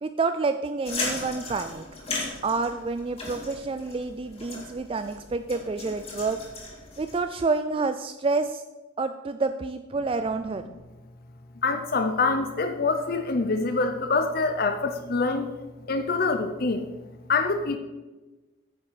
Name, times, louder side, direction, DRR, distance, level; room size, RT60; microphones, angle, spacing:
voice 1, 0.0-1.9 2.4-6.4 7.0-8.6 9.0-10.6, right 3 dB, 30° right, 9 dB, 0.3 m, -28 dB
sound 1, 0.8-7.2, left 3 dB, 30° left, 2.2 m, -36 dB
voice 2, 11.6-15.5 15.9-16.8 17.3-17.8, left 3 dB, 50° left, 7 dB, 0.6 m, -25 dB
8.9 x 7.7 x 4.7 m, 1.2 s
head